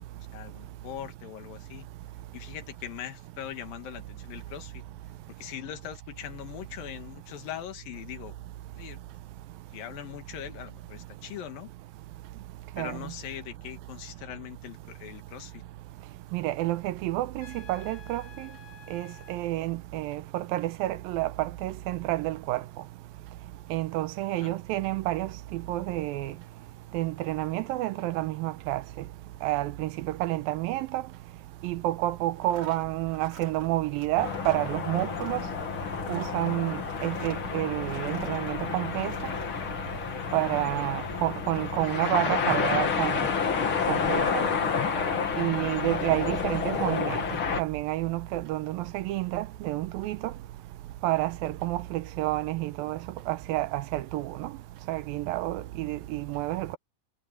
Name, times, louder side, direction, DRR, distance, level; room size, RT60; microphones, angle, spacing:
voice 1, 0.3-1.9 2.3-4.8 5.4-8.3 8.7-9.0 9.7-11.7 12.8-15.6 24.4-24.5 45.6-45.9, left 11 dB, 70° left, 3.3 m, -41 dB
voice 2, 16.3-18.5 18.9-22.6 23.7-26.3 26.9-28.8 29.4-31.0 31.6-35.4 36.1-39.1 40.3-43.2 43.9-44.4 45.4-47.2 47.6-50.3 51.0-53.0 53.3-54.5 54.9-56.8, right 16 dB, 80° right, 2.4 m, -29 dB
Trumpet, 17.4-19.4, left 8 dB, 90° left, 6.1 m, -51 dB
sound 1, 32.3-38.5 38.9-39.5, right 4 dB, 35° right, 5.4 m, -48 dB
sound 2, 34.2-47.6, left 6 dB, 40° left, 2.2 m, -30 dB
omnidirectional pair, 4.4 m